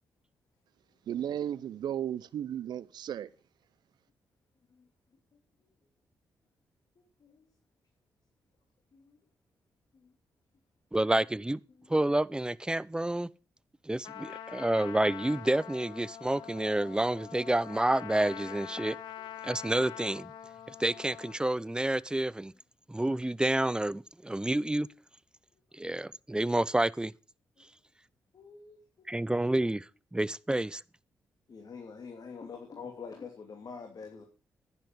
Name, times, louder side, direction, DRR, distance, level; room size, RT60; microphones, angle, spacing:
voice 1, 1.1-3.3, right 10 dB, 70° right, 0.6 m, -34 dB
voice 2, 7.0-7.5 8.9-9.1 9.9-10.1 11.8-11.9 28.3-29.3 31.5-34.3, left 5 dB, 60° left, 2.8 m, -46 dB
voice 3, 10.9-11.6 11.9-13.3 13.9-19.0 19.4-20.3 20.8-22.5 22.9-24.9 25.7-27.1 29.1-30.8, right 1 dB, 10° right, 0.6 m, -29 dB
Trumpet, 14.0-21.4, left 10 dB, 80° left, 1.2 m, -44 dB
11.0 x 10.5 x 5.2 m
supercardioid pair, 45°, 7 cm